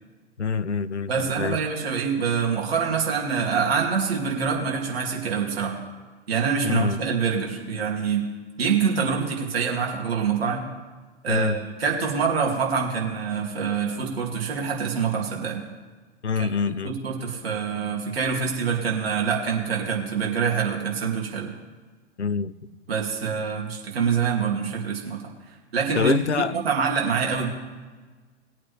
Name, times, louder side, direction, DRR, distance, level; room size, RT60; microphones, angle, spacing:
voice 1, 0.4-1.6 6.6-7.0 11.3-11.5 16.2-16.9 22.2-22.5 25.9-26.5, left 5 dB, 85° left, 0.6 m, -25 dB
voice 2, 1.1-5.8 6.3-8.3 8.6-10.6 11.2-15.6 16.4-21.5 22.9-25.2 25.7-26.1 26.5-27.5, right 6 dB, 60° right, 2.7 m, -25 dB
20.0 x 8.7 x 3.4 m
figure-of-eight pair, 105°, 33 cm